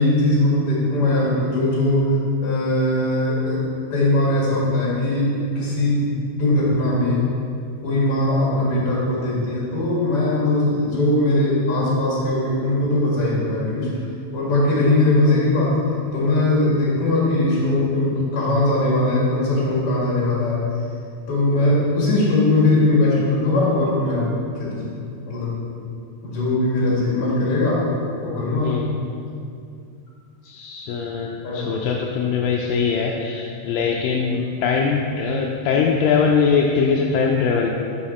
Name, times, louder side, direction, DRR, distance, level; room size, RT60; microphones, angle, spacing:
voice 1, 0.0-2.1 2.4-3.6 3.9-7.2 7.8-13.9 14.3-15.8 16.1-20.6 21.3-24.3 24.6-24.9 25.3-25.6 26.2-27.9 28.2-28.8 31.4-31.9 34.3-34.4, left 2 dB, 40° left, -5 dB, 2.5 m, -20 dB
voice 2, 30.4-37.7, left 5 dB, 80° left, 0 dB, 2.0 m, -21 dB
9.8 x 5.6 x 4.2 m, 2.4 s
omnidirectional pair, 4.4 m